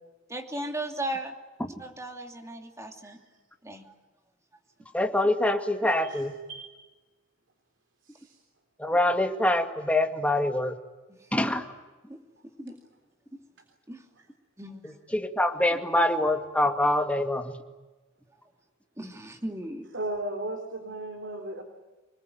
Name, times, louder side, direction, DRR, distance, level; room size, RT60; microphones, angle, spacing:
voice 1, 0.3-1.4 1.8-3.2 3.6-3.9 11.2-11.5 12.1-12.2 12.6-12.8 13.3-13.4 13.9-14.0 14.6-14.8 19.0-19.9, right 1 dB, 15° right, 4 dB, 2.8 m, -36 dB
voice 2, 4.9-6.3 8.8-10.7 11.3-11.6 15.1-17.5, left 1 dB, 5° left, 4 dB, 2.2 m, -25 dB
voice 3, 19.9-21.6, right 1 dB, 65° right, 4 dB, 3.7 m, -35 dB
26.5 x 20.5 x 9.4 m, 1.2 s
head